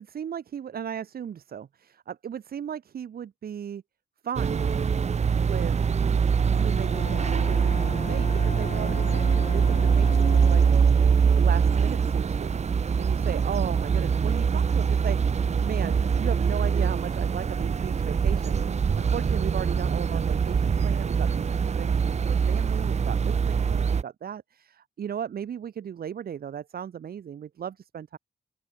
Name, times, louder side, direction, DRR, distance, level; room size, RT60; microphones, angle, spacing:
voice 1, 0.0-3.8 4.2-4.8 5.4-5.8 6.5-11.1 11.4-12.5 13.0-28.2, right 8 dB, 90° right, 1.9 m, -36 dB
sound 1, 4.4-24.0, right 6 dB, 50° right, 0.9 m, -23 dB
Brass instrument, 6.5-10.9, left 5 dB, 50° left, 3.7 m, -39 dB
open air
wide cardioid pair, 115°, 15 cm